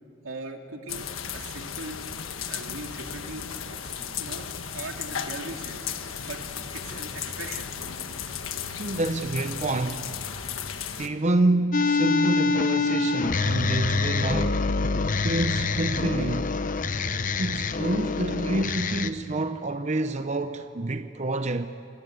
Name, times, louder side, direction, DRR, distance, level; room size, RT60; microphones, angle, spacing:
voice 1, 0.2-1.0 1.3-2.0 2.5-3.4 3.8-3.9 4.2-4.4 4.7-5.9 6.2-6.4 6.7-7.7, right 2 dB, 90° right, 2.6 m, -39 dB
sound 1, 0.9-11.1, left 7 dB, 90° left, 1.4 m, -35 dB
voice 2, 8.8-10.3 11.0-14.7 15.2-16.6 17.4-21.7, right 2 dB, 35° right, 0.7 m, -27 dB
sound 2, 11.7-19.1, left 3 dB, 40° left, 0.9 m, -25 dB
27.5 x 21.0 x 8.3 m
head